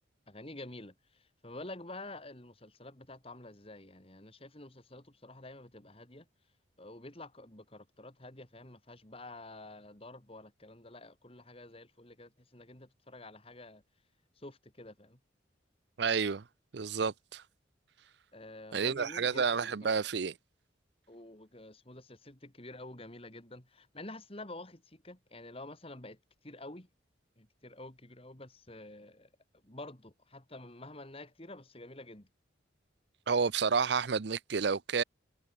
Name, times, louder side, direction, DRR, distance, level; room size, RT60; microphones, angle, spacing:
voice 1, 0.3-6.3 6.8-13.8 14.4-15.2 18.3-20.0 21.1-26.2 26.4-26.9 27.4-29.3 29.6-32.3, left 2 dB, 30° left, 2.7 m, -49 dB
voice 2, 16.0-16.4 16.7-17.4 18.7-20.3 33.3-35.0, right 5 dB, 60° right, 0.6 m, -30 dB
head